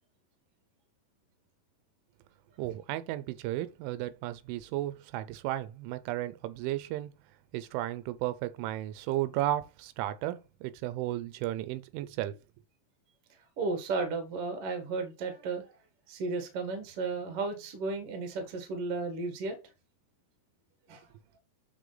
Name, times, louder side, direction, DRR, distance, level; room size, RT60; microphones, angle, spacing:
voice 1, 2.6-7.1 7.5-12.4, right 14 dB, 90° right, 3.2 m, -34 dB
voice 2, 13.6-15.7 16.1-19.5 20.9-21.1, right 3 dB, 70° right, 1.3 m, -34 dB
10.5 x 3.8 x 4.0 m
omnidirectional pair, 5.4 m